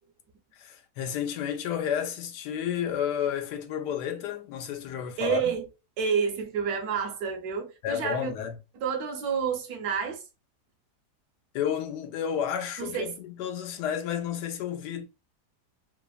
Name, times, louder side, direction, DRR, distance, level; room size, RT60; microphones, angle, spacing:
voice 1, 0.6-5.5 7.8-8.6 11.5-15.1, left 9 dB, 85° left, 1.2 m, -31 dB
voice 2, 5.2-5.7 6.0-8.3 8.8-10.2 12.8-13.2, right 6 dB, 75° right, 1.1 m, -29 dB
3.2 x 2.0 x 2.3 m
omnidirectional pair, 1.8 m